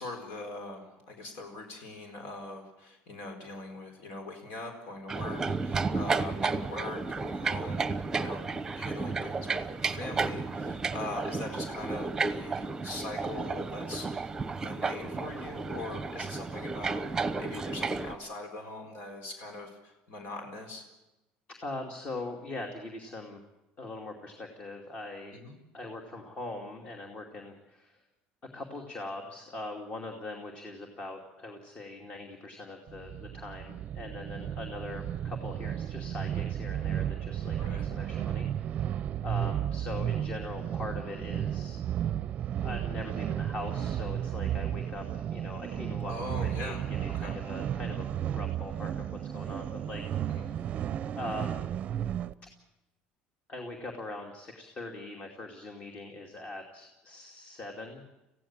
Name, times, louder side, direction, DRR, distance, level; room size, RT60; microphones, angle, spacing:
voice 1, 0.0-8.4 8.7-14.1 14.6-20.8 25.3-25.6 37.6-37.9 46.1-46.8 47.1-47.4 50.3-50.5, left 2 dB, 70° left, 4 dB, 4.3 m, -42 dB
sound 1, 5.1-18.1, right 4 dB, 15° right, 1.0 m, -32 dB
voice 2, 21.6-23.4 23.8-25.3 25.7-28.0 28.5-38.9 39.2-41.8 42.6-46.7 47.0-49.1 49.3-50.0 50.3-50.5 51.2-51.7 53.5-58.0, left 2 dB, 35° left, 2 dB, 2.6 m, -41 dB
sound 2, 32.9-52.3, right 10 dB, 40° right, 0.6 m, -33 dB
25.5 x 16.0 x 7.5 m, 1.0 s
cardioid pair, 140°, 4 cm